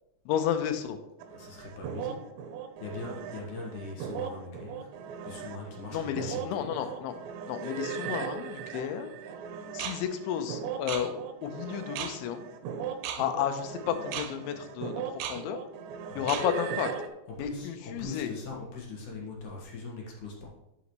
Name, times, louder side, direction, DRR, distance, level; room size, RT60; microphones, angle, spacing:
voice 1, 0.3-1.0 5.9-7.2 7.5-9.1 9.7-11.1 11.4-12.5 13.2-15.6 16.1-16.9 17.4-18.3, left 9 dB, 90° left, 8 dB, 3.2 m, -32 dB
sound 1, 1.2-17.1, right 7 dB, 85° right, 3.0 m, -38 dB
voice 2, 1.3-2.3 2.8-4.9 5.2-6.9 16.1-16.3 17.3-20.5, left 3 dB, 60° left, -2 dB, 2.4 m, -41 dB
11.5 x 7.0 x 3.1 m, 0.93 s
omnidirectional pair, 5.2 m